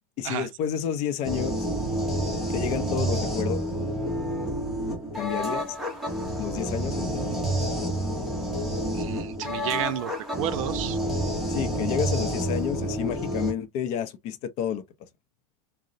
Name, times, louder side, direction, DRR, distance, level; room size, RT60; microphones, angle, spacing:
voice 1, 0.2-1.7 2.5-3.6 5.1-5.8 6.4-7.4 11.5-14.8, left 8 dB, 35° left, 0.4 m, -30 dB
sound 1, 1.2-13.5, equal, ahead, 0.8 m, -29 dB
voice 2, 8.9-11.0, right 12 dB, 65° right, 0.5 m, -31 dB
3.7 x 2.0 x 2.5 m
supercardioid pair, 145°, 19 cm